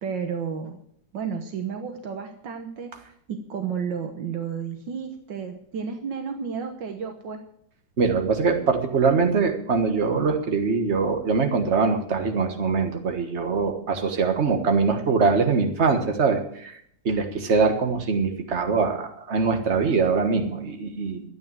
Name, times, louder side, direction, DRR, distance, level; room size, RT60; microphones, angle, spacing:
voice 1, 0.0-0.8 1.1-2.9 3.3-7.4, right 6 dB, 85° right, 5 dB, 1.9 m, -32 dB
voice 2, 8.0-16.8 17.0-21.2, right 4 dB, 40° right, 5 dB, 1.7 m, -23 dB
12.5 x 8.9 x 7.5 m, 0.67 s
omnidirectional pair, 1.9 m